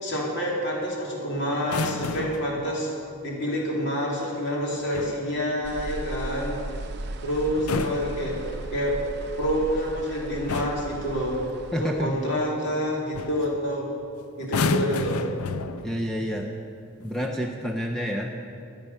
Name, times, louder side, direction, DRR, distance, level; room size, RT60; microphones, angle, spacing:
voice 1, 0.0-2.9 3.2-6.6 7.2-8.4 8.7-9.0 9.4-11.4 11.8-13.9 14.4-15.2, equal, 50° left, -3 dB, 2.9 m, -27 dB
sound 1, 1.6-2.6 4.7-5.3 7.5-8.8 9.9-10.1 10.5-11.0 12.7-12.8 13.1-13.5 14.4-16.1 17.0-17.3, left 4 dB, 80° left, 0.5 m, -31 dB
sound 2, 5.6-12.4, right 2 dB, 50° right, 0.7 m, -37 dB
voice 2, 11.7-12.2 15.8-16.5 17.0-18.4, equal, ahead, 0 dB, 0.6 m, -28 dB
14.0 x 9.7 x 5.7 m, 2.5 s
head